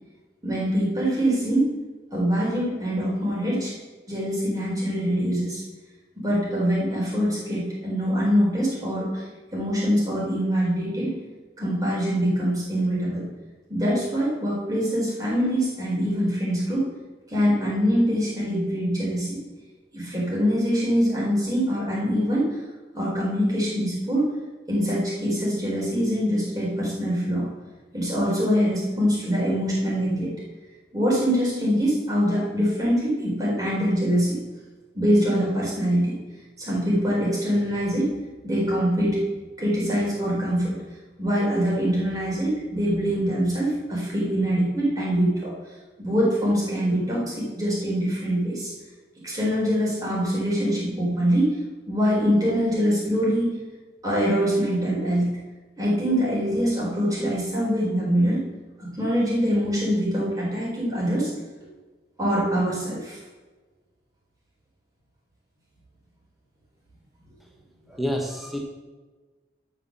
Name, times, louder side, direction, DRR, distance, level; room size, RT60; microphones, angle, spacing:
voice 1, 0.4-1.7 2.1-3.7 4.1-5.6 6.2-9.2 9.5-11.1 11.6-13.2 13.7-16.8 17.3-19.4 19.9-22.5 22.9-24.3 24.7-27.4 27.9-30.3 30.9-34.4 34.9-36.1 36.6-38.1 38.4-39.2 39.6-40.7 41.2-45.5 46.0-48.7 49.2-51.5 51.9-53.5 54.0-55.3 55.8-58.4 58.8-61.3 62.2-63.2, equal, 20° right, -6 dB, 4.3 m, -24 dB
voice 2, 67.9-68.6, equal, ahead, 0 dB, 1.3 m, -29 dB
11.5 x 6.0 x 6.8 m, 1.3 s
head